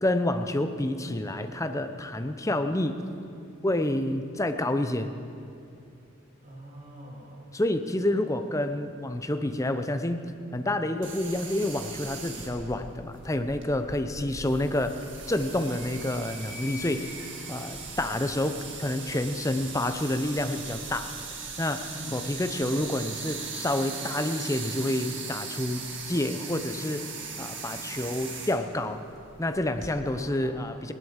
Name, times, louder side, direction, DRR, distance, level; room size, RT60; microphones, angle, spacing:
voice 1, 0.0-3.0 3.6-5.1 7.5-15.0 15.3-17.1 17.5-21.1 21.6-27.1 27.4-29.0 29.4-30.9, left 1 dB, 15° left, 8 dB, 0.6 m, -28 dB
voice 2, 6.4-7.5 14.1-14.4 21.9-22.2 30.0-30.8, right 1 dB, 35° right, -5 dB, 3.1 m, -44 dB
sound 1, 11.0-29.9, right 5 dB, 55° right, 1.9 m, -39 dB
Animal, 14.8-20.6, left 2 dB, 70° right, 3.5 m, -47 dB
17.5 x 11.0 x 7.4 m, 2.6 s
head